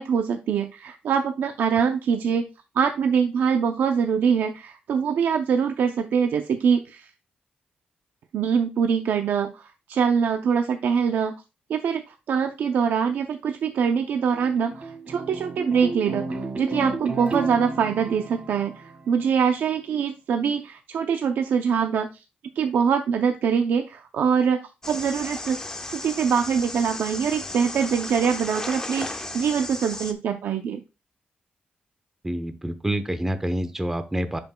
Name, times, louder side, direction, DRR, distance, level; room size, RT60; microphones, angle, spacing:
voice 1, 0.0-2.5 2.8-7.1 8.3-11.4 11.7-22.1 22.6-24.6 24.9-25.6 25.9-30.8, right 7 dB, 85° right, 6 dB, 0.5 m, -24 dB
sound 1, 14.1-19.5, right 2 dB, 40° right, 1.7 m, -33 dB
sound 2, 24.8-30.1, left 2 dB, 20° left, 0.9 m, -35 dB
voice 2, 32.2-34.4, right 1 dB, 10° right, 9 dB, 0.7 m, -27 dB
10.5 x 5.2 x 2.2 m, 0.27 s
wide cardioid pair, 120°, 3 cm